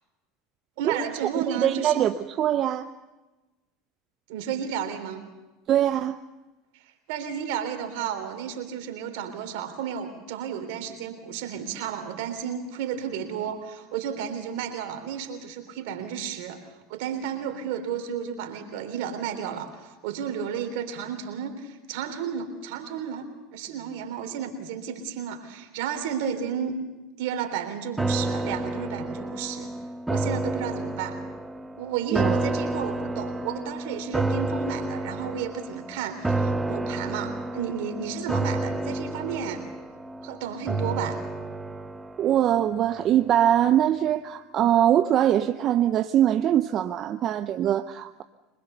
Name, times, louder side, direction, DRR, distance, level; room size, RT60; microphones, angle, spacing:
voice 1, 0.8-2.0 4.3-5.2 6.7-16.6 16.9-26.8 27.2-29.7 30.1-31.2 31.8-39.6 40.2-41.2, right 8 dB, 70° right, 3.6 m, -32 dB
voice 2, 1.3-2.9 5.7-6.2 32.1-32.4 42.2-48.2, right 11 dB, 45° right, 0.7 m, -22 dB
sound 1, 28.0-43.3 43.6-43.7, right 2 dB, 10° right, 1.2 m, -30 dB
25.0 x 21.0 x 6.9 m
hypercardioid pair, 95°, 0 cm